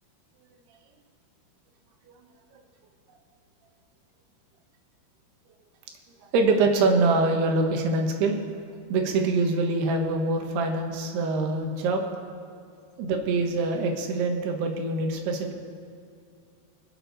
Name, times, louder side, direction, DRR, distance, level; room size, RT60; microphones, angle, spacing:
voice 1, 6.3-8.4 8.9-12.0 13.0-15.5, right 3 dB, 90° right, 3 dB, 3.4 m, -24 dB
26.0 x 8.8 x 4.1 m, 2.4 s
omnidirectional pair, 4.5 m